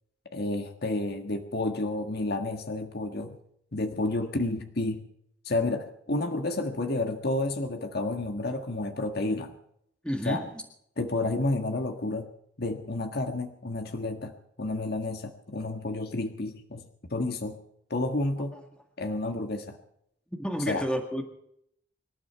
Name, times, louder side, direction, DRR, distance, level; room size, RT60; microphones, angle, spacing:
voice 1, 0.3-3.4 3.7-5.0 5.4-9.6 10.2-10.4 11.0-12.3 12.6-17.6 17.9-18.6 19.0-19.8 20.7-20.8, left 2 dB, 60° left, 6 dB, 1.6 m, -30 dB
voice 2, 10.0-10.6 18.5-18.6 20.4-21.2, equal, 5° left, 3 dB, 1.8 m, -30 dB
26.0 x 12.0 x 4.6 m, 0.72 s
head